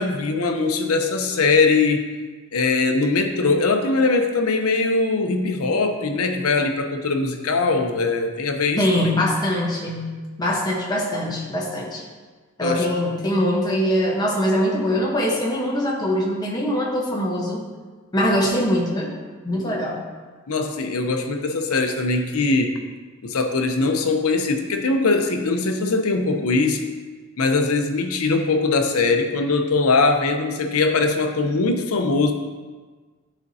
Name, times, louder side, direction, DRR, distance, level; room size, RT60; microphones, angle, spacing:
voice 1, 0.0-2.1 2.5-9.1 12.6-12.8 19.5-19.7 20.5-22.7 23.2-26.9 27.4-32.3, left 3 dB, 85° left, 5 dB, 0.7 m, -21 dB
voice 2, 8.8-10.1 10.4-12.1 12.6-17.6 18.1-19.1 19.4-20.0, equal, 20° left, -3 dB, 1.0 m, -22 dB
10.5 x 4.3 x 2.7 m, 1.4 s
head